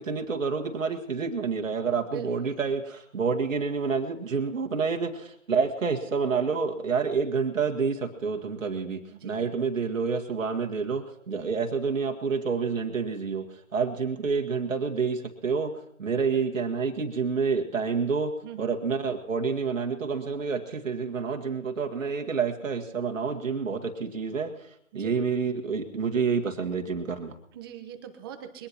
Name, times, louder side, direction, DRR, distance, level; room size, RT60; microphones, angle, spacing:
voice 1, 0.0-13.5 13.7-24.7 24.9-27.4, right 5 dB, 70° right, 3 dB, 1.9 m, -28 dB
voice 2, 2.0-2.5 9.1-9.5 18.4-18.7 24.9-25.1 27.5-28.7, right 10 dB, 15° right, 6 dB, 1.0 m, -42 dB
22.5 x 19.0 x 2.9 m, 0.70 s
figure-of-eight pair, 150°, 40 cm